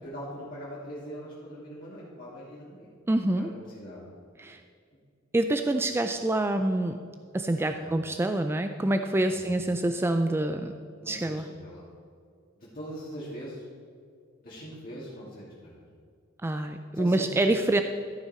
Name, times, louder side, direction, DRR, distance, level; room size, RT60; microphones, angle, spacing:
voice 1, 0.0-2.9 3.3-4.0 5.8-5.9 7.6-7.9 9.3-9.5 11.0-11.8 12.6-13.6 14.4-15.7 16.9-17.5, equal, 45° left, -8 dB, 2.6 m, -42 dB
voice 2, 3.1-3.5 4.4-4.6 5.3-7.0 7.3-10.7 11.1-11.5 16.4-17.8, right 1 dB, 10° right, 7 dB, 0.3 m, -26 dB
14.0 x 5.9 x 4.3 m, 2.2 s
head